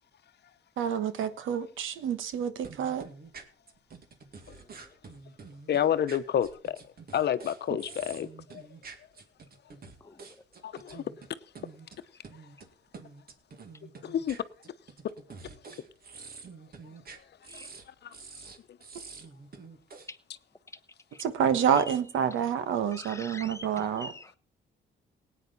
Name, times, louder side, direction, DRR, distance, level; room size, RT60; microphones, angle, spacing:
voice 1, 0.8-3.1 21.2-24.1, right 8 dB, 80° right, 1.3 m, -28 dB
sound 1, 1.2-1.3 1.9-2.4 2.6-11.3 11.6-12.0 12.2-12.7 12.9-17.8 18.1-20.1, right 4 dB, 50° right, 2.1 m, -48 dB
voice 2, 5.7-6.8 7.1-8.6 10.6-11.0 14.0-14.4 18.0-18.1 23.8-23.9, left 9 dB, 60° left, 0.9 m, -29 dB
voice 3, 22.9-24.4, left 2 dB, 15° left, 1.0 m, -44 dB
18.0 x 9.3 x 4.1 m
cardioid pair, 90°, 20 cm